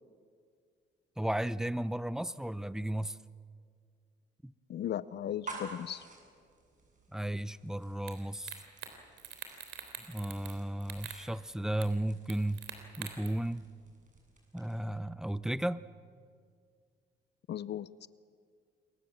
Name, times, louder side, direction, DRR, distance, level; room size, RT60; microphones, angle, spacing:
voice 1, 1.2-3.2 4.4-4.5 7.1-8.6 10.1-12.6 13.0-13.6 14.5-15.8, right 1 dB, 5° right, 16 dB, 0.7 m, -34 dB
voice 2, 4.7-6.1 17.5-18.1, left 10 dB, 60° left, 17 dB, 0.6 m, -37 dB
sound 1, 5.2-15.0, right 3 dB, 40° right, 7.6 m, -52 dB
sound 2, 8.1-8.2 8.5-8.9 9.2-10.5 10.8-11.2 11.8-11.9 12.3-13.3, right 9 dB, 75° right, 3.6 m, -44 dB
28.0 x 23.0 x 7.3 m, 2.1 s
cardioid pair, 90°, 20 cm